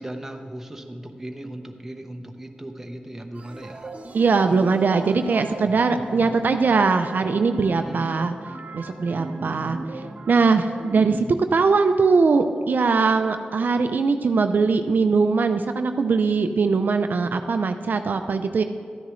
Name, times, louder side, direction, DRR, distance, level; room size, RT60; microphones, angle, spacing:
voice 1, 0.0-3.9 5.6-5.9 7.8-8.3, right 1 dB, 10° right, 3 dB, 1.0 m, -37 dB
sound 1, 3.3-11.2, right 2 dB, 45° right, 0.8 m, -37 dB
voice 2, 4.1-8.3 8.7-11.3 11.5-18.6, right 4 dB, 65° right, 7 dB, 0.5 m, -21 dB
12.5 x 9.8 x 3.2 m, 2.3 s
wide cardioid pair, 75°, 3 cm